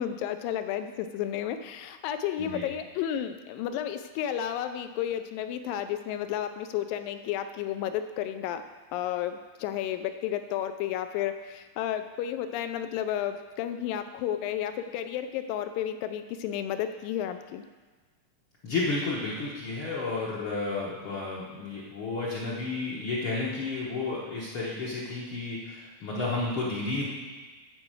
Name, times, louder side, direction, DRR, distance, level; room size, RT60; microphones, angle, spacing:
voice 1, 0.0-8.6 8.9-17.6, left 10 dB, 80° left, 9 dB, 2.2 m, -32 dB
voice 2, 18.6-27.1, left 3 dB, 65° left, -6 dB, 1.3 m, -32 dB
9.7 x 4.7 x 7.5 m, 1.4 s
omnidirectional pair, 4.1 m